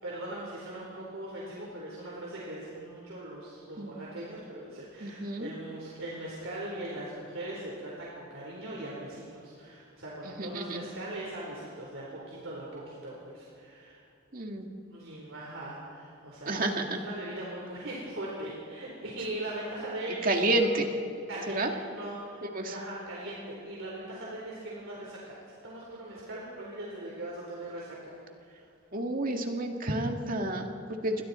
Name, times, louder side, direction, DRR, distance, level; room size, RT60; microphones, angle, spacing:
voice 1, 0.0-14.0 14.9-20.7 21.3-28.1 28.4-28.5, right 1 dB, 65° right, -4 dB, 4.1 m, -40 dB
voice 2, 5.0-5.5 10.2-10.8 14.3-14.7 16.5-17.0 20.2-20.9 21.5-21.7 22.5-22.7 28.9-31.2, right 2 dB, 40° right, 3 dB, 2.0 m, -30 dB
28.0 x 23.0 x 4.4 m, 2.6 s
head